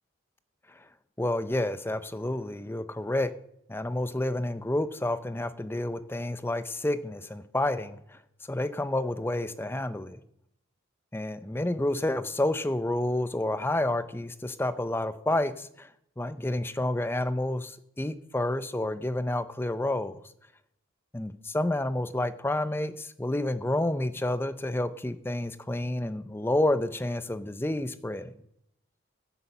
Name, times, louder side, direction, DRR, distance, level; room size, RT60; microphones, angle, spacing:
voice 1, 1.2-3.3 3.7-8.2 8.5-10.2 11.1-15.9 16.2-20.2 21.1-28.3, left 1 dB, 10° left, 0.5 m, -29 dB
11.5 x 8.4 x 6.8 m
head